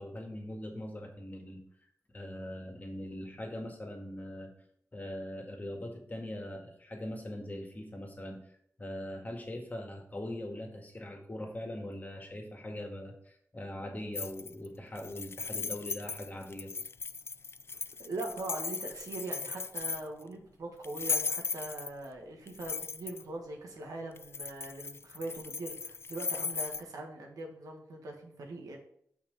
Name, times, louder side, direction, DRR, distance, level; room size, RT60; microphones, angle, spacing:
voice 1, 0.0-1.6 2.1-4.5 4.9-8.4 8.8-16.7, left 1 dB, 30° left, 2 dB, 1.8 m, -41 dB
sound 1, 14.1-14.7 15.0-20.2 20.8-22.1 22.5-23.2 24.2-26.8, left 5 dB, 45° left, 0.3 m, -37 dB
voice 2, 18.0-28.8, right 2 dB, 85° right, 1 dB, 1.4 m, -41 dB
6.0 x 4.5 x 5.4 m, 0.68 s
cardioid pair, 55°, 6 cm